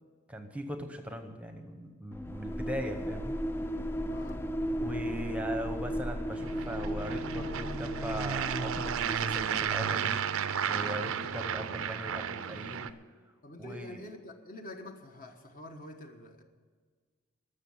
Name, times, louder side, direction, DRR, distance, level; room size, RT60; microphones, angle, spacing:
voice 1, 0.3-3.4 4.8-13.0 13.6-14.0, equal, 5° right, 6 dB, 0.9 m, -39 dB
sound 1, 2.1-9.9, equal, 10° left, 0.4 m, -35 dB
voice 2, 4.1-4.5 13.4-16.4, left 1 dB, 40° left, 4 dB, 1.3 m, -47 dB
sound 2, 6.3-12.9, right 7 dB, 70° right, 0.5 m, -33 dB
14.0 x 6.5 x 9.5 m, 1.5 s
head